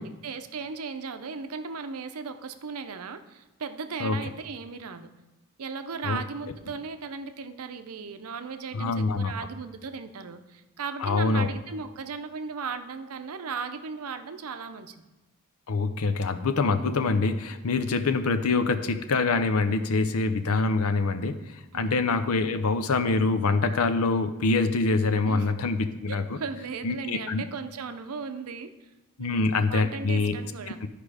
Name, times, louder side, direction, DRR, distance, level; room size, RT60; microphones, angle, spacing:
voice 1, 0.0-5.1 5.6-15.0 21.7-22.0 25.2-25.5 26.1-28.7 29.2-30.8, right 5 dB, 90° right, 9 dB, 0.6 m, -37 dB
voice 2, 8.7-9.3 11.0-11.5 15.7-21.4 21.7-26.4 26.8-27.5 29.2-30.4 30.8-30.9, left 3 dB, 75° left, 9 dB, 0.6 m, -25 dB
12.0 x 5.0 x 4.9 m, 1.1 s
head